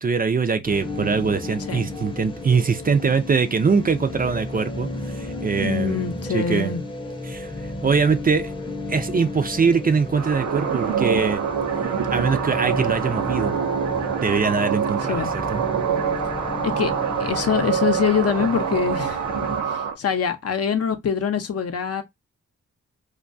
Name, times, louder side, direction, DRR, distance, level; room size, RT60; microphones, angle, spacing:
voice 1, 0.0-6.0 6.3-6.7 7.3-8.5 8.9-11.4 12.1-13.5 14.2-15.2 15.5-15.6, right 5 dB, 30° right, 0.4 m, -22 dB
sound 1, 0.6-19.6, left 2 dB, 15° left, 0.7 m, -33 dB
voice 2, 5.5-6.8 15.1-15.3 16.6-16.9 17.2-19.2 19.6-22.0, left 7 dB, 55° left, 0.6 m, -24 dB
sound 2, 10.2-19.9, right 7 dB, 85° right, 0.5 m, -25 dB
2.2 x 2.2 x 2.5 m
cardioid pair, 55°, 29 cm